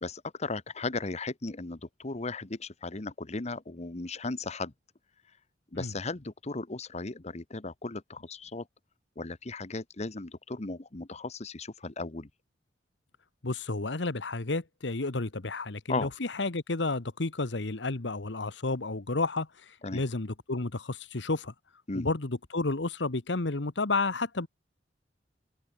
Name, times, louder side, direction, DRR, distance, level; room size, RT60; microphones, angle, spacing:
voice 1, 0.0-4.7 5.7-8.7 9.2-12.3 15.9-16.1 19.8-20.0 21.9-22.1, left 3 dB, 40° left, 1.1 m, -36 dB
voice 2, 13.4-21.5 21.9-24.5, left 3 dB, 75° left, 1.3 m, -31 dB
head